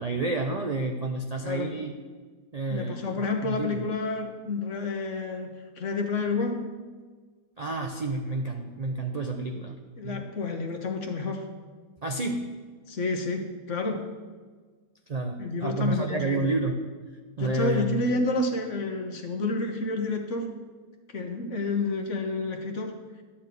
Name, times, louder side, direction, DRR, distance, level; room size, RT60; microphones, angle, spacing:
voice 1, 0.0-2.0 2.5-3.9 7.6-10.3 12.0-12.5 15.1-16.8 17.4-18.1, right 2 dB, 45° right, 3 dB, 0.5 m, -30 dB
voice 2, 1.4-1.9 2.7-5.5 5.8-6.7 10.0-11.5 12.9-14.0 15.4-16.5 17.4-20.5 21.1-23.2, left 3 dB, 55° left, 4 dB, 1.3 m, -30 dB
12.0 x 4.3 x 8.2 m, 1.4 s
omnidirectional pair, 1.6 m